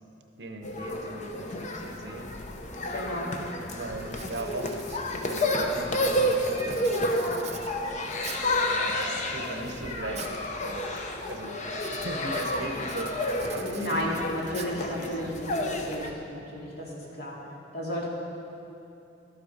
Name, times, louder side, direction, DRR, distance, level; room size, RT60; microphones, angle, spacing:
voice 1, 0.4-2.3 3.7-8.0 8.6-11.6 11.9-14.0 14.7-15.4, right 2 dB, 65° right, 4 dB, 0.9 m, -40 dB
sound 1, 0.6-16.1, left 1 dB, 40° left, 0.8 m, -30 dB
voice 2, 2.9-3.3 13.6-16.9 17.1-17.3 17.7-18.0, equal, 60° left, -4 dB, 2.3 m, -33 dB
Writing, 3.5-3.7 4.1-8.6 9.2-10.4 10.7-11.1 11.7-15.1, right 7 dB, 40° right, 0.7 m, -45 dB
12.0 x 7.6 x 5.2 m, 2.8 s
head